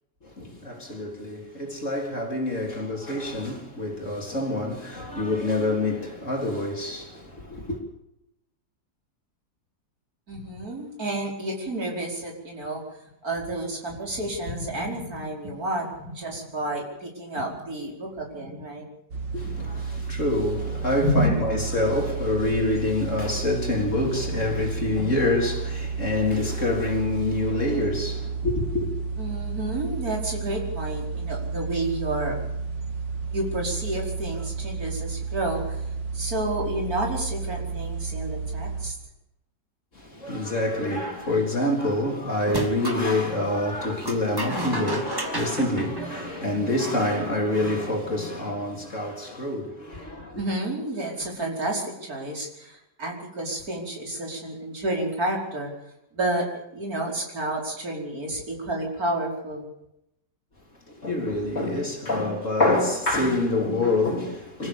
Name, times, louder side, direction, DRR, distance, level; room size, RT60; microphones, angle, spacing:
voice 1, 0.2-7.8 19.3-28.9 39.9-50.4 60.9-64.7, left 2 dB, 45° left, 4.2 m, -26 dB
voice 2, 10.3-12.8 13.2-18.9 19.5-19.6 21.0-21.3 29.2-32.4 33.3-35.8 36.1-39.0 50.4-55.7 56.1-59.7, right 1 dB, 55° right, 5.6 m, -30 dB
sound 1, 19.1-38.9, right 5 dB, 85° right, 2.6 m, -32 dB
sound 2, 42.4-43.0 44.0-46.7, right 1 dB, 10° right, 2.5 m, -32 dB
25.5 x 15.0 x 7.3 m
omnidirectional pair, 1.9 m